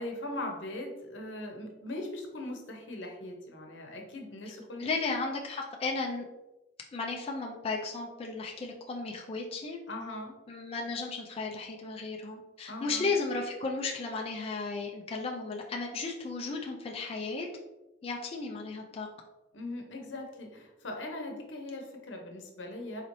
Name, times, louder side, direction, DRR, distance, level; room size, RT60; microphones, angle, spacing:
voice 1, 0.0-4.9 9.9-10.3 12.7-13.1 19.5-23.0, left 1 dB, 85° left, 2 dB, 0.8 m, -40 dB
voice 2, 4.8-6.3 6.9-9.8 10.5-17.5 18.0-19.1, left 3 dB, 30° left, 0 dB, 0.4 m, -34 dB
4.0 x 3.0 x 2.6 m, 1.0 s
head